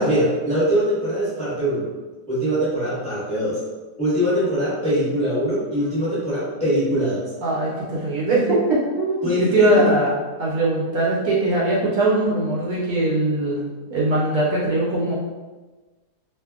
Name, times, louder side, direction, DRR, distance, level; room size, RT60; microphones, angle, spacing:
voice 1, 0.0-1.9 2.3-3.6 4.0-7.2 9.2-9.8, equal, 5° left, -10 dB, 0.9 m, -22 dB
voice 2, 7.4-10.1 10.4-13.6 13.9-15.1, right 2 dB, 70° right, -5 dB, 1.1 m, -21 dB
2.6 x 2.5 x 2.3 m, 1.2 s
omnidirectional pair, 1.7 m